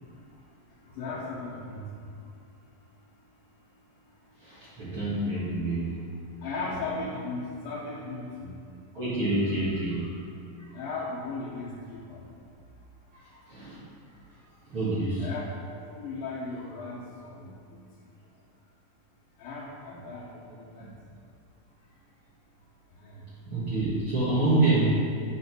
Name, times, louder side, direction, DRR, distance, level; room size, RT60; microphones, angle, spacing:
voice 1, 0.9-1.9 5.2-5.4 6.4-8.5 10.7-12.2 15.2-15.5 15.9-17.5 19.4-20.9 23.0-23.2, left 3 dB, 85° left, -7 dB, 2.7 m, -36 dB
voice 2, 4.4-5.9 8.9-10.1 10.6-10.7 13.1-13.8 14.7-15.3 20.8-20.9 23.5-24.9, right 2 dB, 45° right, -12 dB, 2.4 m, -27 dB
9.2 x 4.2 x 6.1 m, 2.5 s
omnidirectional pair, 4.0 m